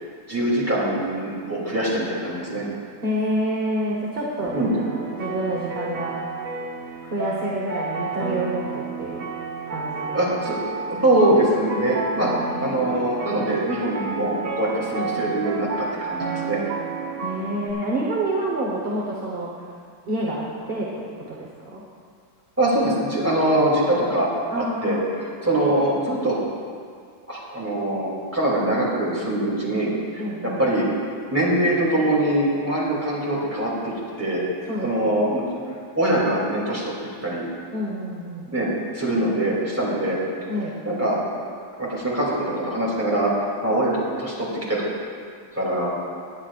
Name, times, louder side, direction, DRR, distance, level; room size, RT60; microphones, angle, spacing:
voice 1, 0.3-2.6 4.5-4.7 10.1-12.3 12.6-16.6 22.6-24.3 24.5-26.4 27.3-30.9 31.3-33.9 34.2-34.4 34.8-35.4 35.9-36.8 37.2-37.5 38.5-38.7 38.9-40.2 40.8-41.2 41.8-43.3 43.6-44.8 45.5-45.9, right 1 dB, 5° right, -6 dB, 2.7 m, -23 dB
voice 2, 3.0-6.1 7.1-9.3 9.7-10.2 12.5-12.9 14.9-15.3 17.2-19.5 20.0-21.8 24.5-25.1 30.2-30.6 34.7-34.9 37.7-38.5 40.5-40.8, right 1 dB, 35° right, -3 dB, 1.1 m, -28 dB
sound 1, 4.4-17.7, right 4 dB, 85° right, 1.9 m, -31 dB
18.5 x 9.8 x 2.5 m, 2.2 s
omnidirectional pair, 2.2 m